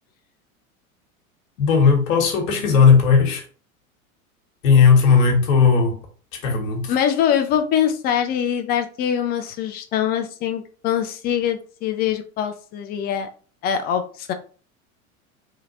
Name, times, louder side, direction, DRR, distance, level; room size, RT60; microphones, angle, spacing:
voice 1, 1.6-3.4 4.6-6.0 6.4-6.9, left 5 dB, 65° left, 1.2 m, -16 dB
voice 2, 6.9-13.3 13.6-14.3, left 9 dB, 25° left, 0.3 m, -23 dB
3.2 x 2.8 x 2.7 m
hypercardioid pair, 85°, 43 cm